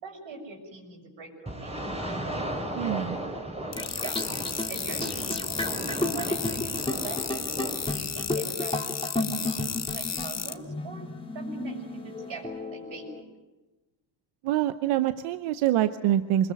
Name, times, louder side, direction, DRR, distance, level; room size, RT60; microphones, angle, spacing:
voice 1, 0.0-2.2 3.7-7.4 7.9-11.1 11.3-13.3, right 3 dB, 65° right, 2 dB, 6.7 m, -43 dB
sound 1, 1.5-8.4, right 1 dB, 10° right, 4.3 m, -36 dB
voice 2, 2.8-3.2 14.4-16.5, right 12 dB, 90° right, 11 dB, 0.9 m, -25 dB
sound 2, 3.7-10.5, left 6 dB, 35° left, 1.3 m, -34 dB
sound 3, 3.8-13.2, left 2 dB, 10° left, 3.0 m, -33 dB
24.0 x 21.0 x 9.3 m, 1.1 s
cardioid pair, 85°, 48 cm